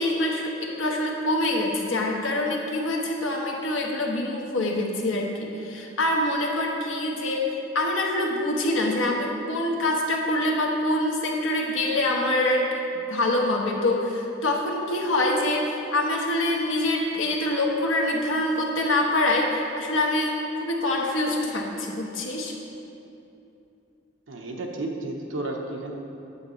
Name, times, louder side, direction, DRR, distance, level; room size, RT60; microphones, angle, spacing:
voice 1, 0.0-12.7 13.1-22.5, left 1 dB, 75° left, 0 dB, 1.0 m, -25 dB
voice 2, 24.3-25.9, right 2 dB, 75° right, 1 dB, 0.9 m, -32 dB
8.1 x 7.9 x 3.1 m, 2.8 s
head